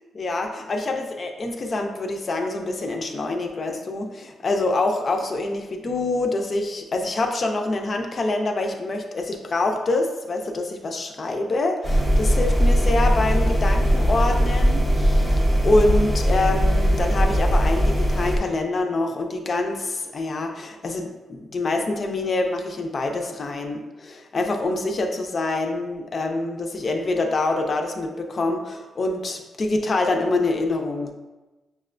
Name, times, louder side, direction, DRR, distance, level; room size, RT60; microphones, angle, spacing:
voice 1, 0.1-15.3 15.6-31.1, left 2 dB, 45° left, 4 dB, 0.5 m, -25 dB
sound 1, 11.8-18.4, equal, 5° right, 0.6 m, -19 dB
6.0 x 2.2 x 2.5 m, 1.1 s
cardioid pair, 95°, 0 cm